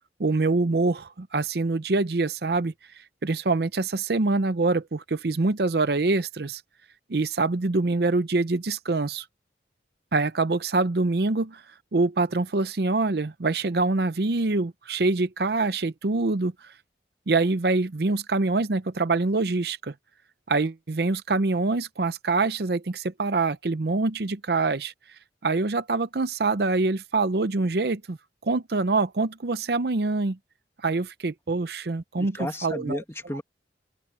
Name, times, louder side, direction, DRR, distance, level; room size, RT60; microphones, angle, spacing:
voice 1, 0.2-2.7 3.2-6.6 7.1-9.3 10.1-11.6 11.9-16.7 17.3-19.9 20.5-24.9 25.4-28.2 28.4-30.4 30.8-33.0, right 3 dB, 60° right, 0.6 m, -25 dB
voice 2, 32.2-33.4, left 1 dB, 15° left, 2.2 m, -33 dB
open air
head